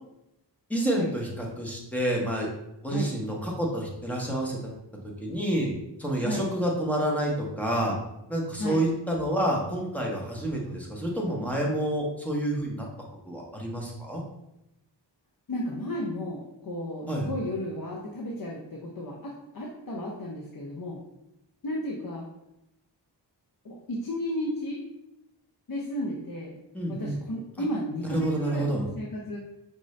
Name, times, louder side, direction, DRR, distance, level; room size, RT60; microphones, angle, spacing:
voice 1, 0.7-2.5 2.8-4.7 5.2-5.7 6.0-7.9 8.3-12.9 13.3-14.2 17.1-17.3 26.7-27.2 28.1-28.8, right 1 dB, 5° left, -2 dB, 1.0 m, -28 dB
voice 2, 15.5-21.0 21.6-22.3 23.6-24.8 25.7-26.5 26.9-29.4, left 1 dB, 55° left, -2 dB, 0.7 m, -33 dB
5.2 x 2.6 x 3.2 m, 0.87 s
wide cardioid pair, 100°, 43 cm